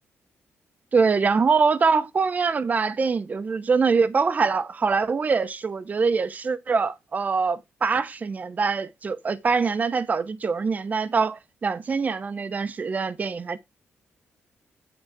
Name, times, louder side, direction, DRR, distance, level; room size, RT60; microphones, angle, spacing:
voice 1, 0.9-13.6, right 5 dB, 35° right, 0.9 m, -24 dB
9.1 x 7.2 x 3.6 m
cardioid pair, 105°, 5 cm